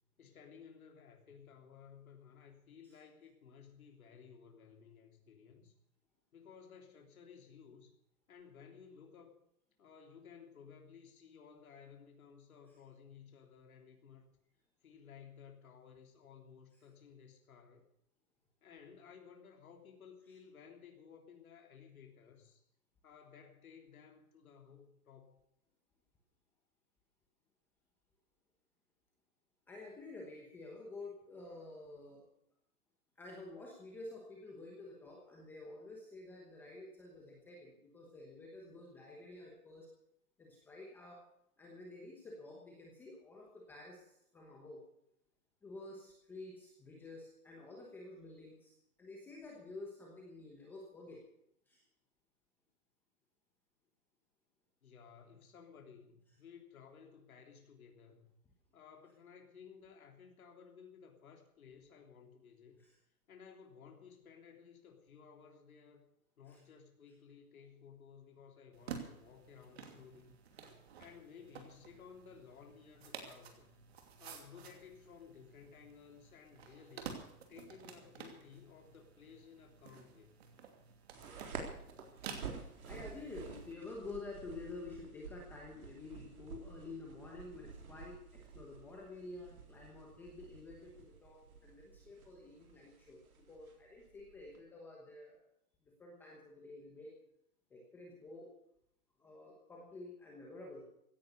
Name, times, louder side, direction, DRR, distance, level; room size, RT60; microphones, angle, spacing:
voice 1, 0.2-5.7 6.3-7.9 8.3-9.3 9.8-14.4 14.8-17.9 18.6-22.6 23.0-25.4 54.8-58.3 58.7-62.8 63.3-66.1 66.4-70.4 71.0-73.7 74.2-77.2 77.5-80.3, left 6 dB, 65° left, 3 dB, 3.4 m, -57 dB
voice 2, 29.7-32.2 33.2-39.9 40.4-41.2 41.6-44.8 45.6-51.2 51.7-51.8 62.8-62.9 66.5-66.6 82.8-95.4 96.0-97.1 97.7-98.5 99.2-100.9, left 2 dB, 5° left, -2 dB, 1.1 m, -50 dB
sound 1, 68.7-83.7, right 6 dB, 45° right, 2.8 m, -52 dB
sound 2, 81.1-94.6, right 5 dB, 65° right, 4.0 m, -51 dB
16.5 x 10.0 x 6.7 m, 0.77 s
hypercardioid pair, 170°, 45 cm